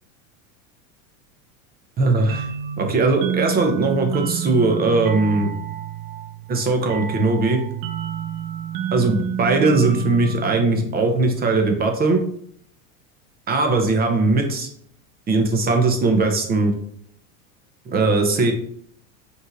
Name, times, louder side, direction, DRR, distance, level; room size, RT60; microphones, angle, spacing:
voice 1, 2.0-2.5 2.8-5.5 6.5-7.6 8.9-12.2 13.5-14.7 15.3-16.7 17.9-18.5, right 3 dB, 25° right, 4 dB, 0.6 m, -19 dB
sound 1, 2.3-11.6, right 9 dB, 70° right, 0.6 m, -29 dB
5.2 x 3.2 x 2.5 m, 0.64 s
supercardioid pair, 130°, 41 cm